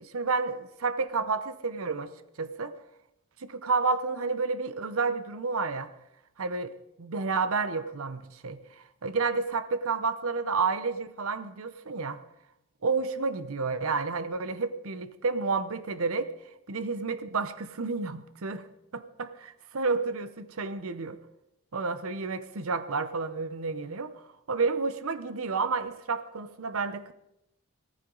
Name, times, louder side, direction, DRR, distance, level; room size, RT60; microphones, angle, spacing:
voice 1, 0.0-2.1 2.4-2.7 3.4-5.9 6.4-12.2 12.8-16.3 16.7-18.7 18.9-21.2 21.7-27.1, right 4 dB, 75° right, 13 dB, 0.8 m, -30 dB
18.0 x 14.5 x 3.9 m, 0.84 s
head